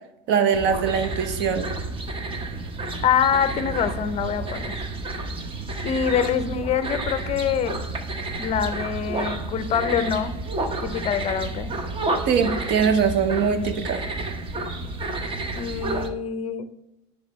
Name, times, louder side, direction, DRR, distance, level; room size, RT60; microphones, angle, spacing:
voice 1, 0.3-1.7 12.2-14.0, right 6 dB, 55° right, 8 dB, 0.9 m, -22 dB
sound 1, 0.5-16.1, right 2 dB, 25° right, 0.8 m, -30 dB
voice 2, 3.0-4.8 5.8-7.8 8.4-10.3 10.8-11.7 15.6-16.6, left 8 dB, 30° left, 11 dB, 0.6 m, -25 dB
9.8 x 3.4 x 3.1 m, 0.93 s
supercardioid pair, 120°, 21 cm